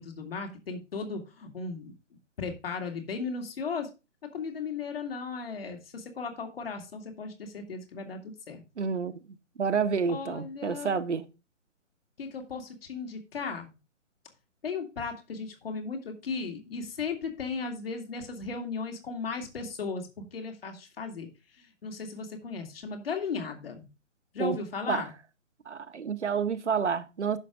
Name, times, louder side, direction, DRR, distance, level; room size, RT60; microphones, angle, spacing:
voice 1, 0.0-1.9 2.4-3.9 4.3-8.6 10.1-11.0 12.2-13.7 14.6-23.9 24.3-25.1, left 5 dB, 45° left, 2.3 m, -36 dB
voice 2, 8.8-9.1 9.6-11.3 24.4-24.6 24.9-25.0 25.7-27.4, right 6 dB, 60° right, 1.0 m, -29 dB
10.0 x 6.6 x 3.7 m
figure-of-eight pair, 140°, 40 cm